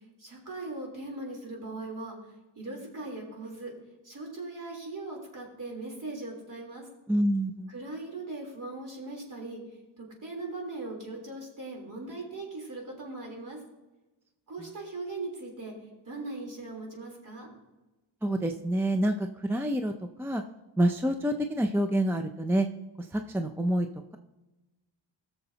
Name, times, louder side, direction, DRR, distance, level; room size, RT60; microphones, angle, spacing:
voice 1, 0.2-2.2 2.6-3.7 4.0-6.9 7.7-9.6 10.0-13.6 14.5-15.7 16.1-17.5, right 2 dB, 40° right, -1 dB, 3.6 m, -39 dB
voice 2, 7.1-7.7 18.2-19.9 20.2-20.4 20.8-22.7 23.0-23.9, right 1 dB, 5° right, 6 dB, 0.4 m, -27 dB
18.5 x 6.8 x 2.8 m, 1.1 s
cardioid pair, 110°, 47 cm